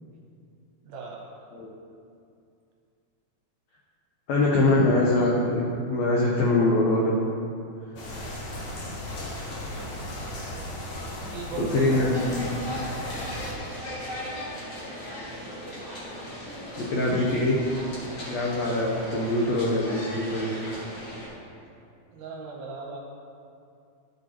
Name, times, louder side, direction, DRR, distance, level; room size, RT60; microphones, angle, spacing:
voice 1, 0.8-1.5 11.3-12.4 15.3-15.5 22.1-23.0, right 4 dB, 70° right, -2 dB, 2.0 m, -38 dB
voice 2, 4.3-7.1 11.7-12.3 16.8-17.6 18.3-20.5, left 2 dB, 85° left, -4 dB, 1.5 m, -23 dB
sound 1, 8.0-13.5, left 1 dB, 65° left, 1.6 m, -36 dB
sound 2, 12.1-21.3, equal, 40° left, 1.8 m, -37 dB
12.0 x 5.3 x 2.9 m, 2.5 s
omnidirectional pair, 4.1 m